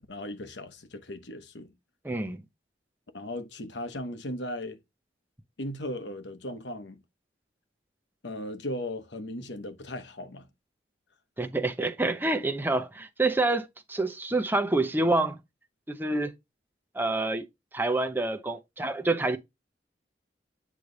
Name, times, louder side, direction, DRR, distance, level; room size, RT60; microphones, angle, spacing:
voice 1, 0.0-1.7 3.1-4.8 5.6-7.0 8.2-10.5, left 1 dB, 80° left, 1.1 m, -37 dB
voice 2, 2.0-2.4 11.4-15.4 15.9-16.3 16.9-17.4 17.7-19.4, right 2 dB, 10° right, 0.7 m, -27 dB
8.4 x 3.2 x 3.9 m
head